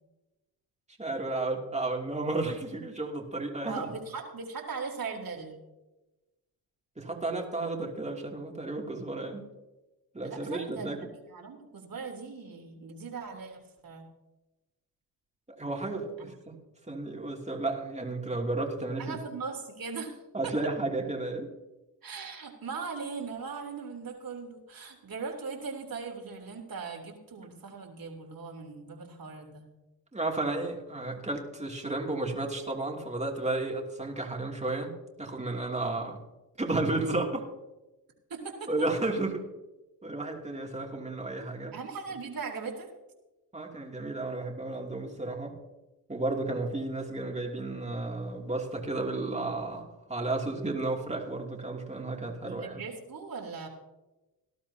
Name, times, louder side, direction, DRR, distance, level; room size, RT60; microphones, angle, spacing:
voice 1, 1.0-3.9 7.0-9.4 10.1-11.0 15.5-16.6 16.9-19.2 20.3-21.5 30.1-34.9 35.2-36.2 36.6-37.5 38.7-39.4 40.0-41.7 43.5-45.5 46.1-52.8, right 2 dB, 15° right, 1 dB, 2.8 m, -33 dB
voice 2, 3.6-5.6 10.2-14.1 16.2-16.3 19.0-20.7 22.0-29.7 38.3-38.9 41.7-42.9 52.2-53.7, right 5 dB, 50° right, 1 dB, 3.3 m, -39 dB
18.5 x 12.0 x 2.8 m, 1.1 s
supercardioid pair, 65°, 44 cm